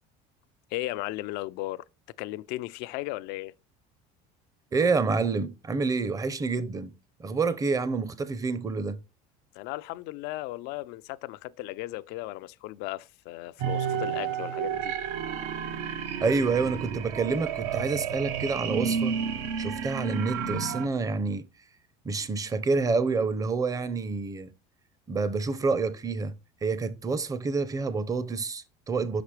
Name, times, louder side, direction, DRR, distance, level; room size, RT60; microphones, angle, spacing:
voice 1, 0.7-1.8 2.2-3.5 9.5-14.9, left 17 dB, 65° left, 0.4 m, -36 dB
voice 2, 4.7-6.9 7.2-9.0 16.2-19.2 19.6-21.4 22.0-24.5 25.1-29.2, right 4 dB, 20° right, 0.6 m, -28 dB
sound 1, 13.6-20.9, right 7 dB, 75° right, 0.8 m, -31 dB
5.9 x 5.9 x 3.2 m
supercardioid pair, 115°, 18 cm